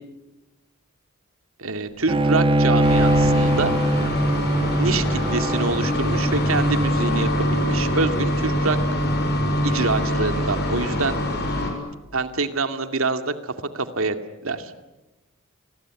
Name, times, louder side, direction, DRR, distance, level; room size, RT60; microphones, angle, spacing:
voice 1, 1.6-3.7 4.8-8.8 9.6-11.2 12.1-14.2 14.4-14.7, right 3 dB, 75° right, 8 dB, 2.3 m, -26 dB
Bowed string instrument, 2.1-7.4, right 1 dB, 25° right, 1.5 m, -22 dB
sound 1, 2.8-11.7, equal, 50° left, 6.8 m, -23 dB
29.0 x 20.5 x 9.7 m, 1.1 s
head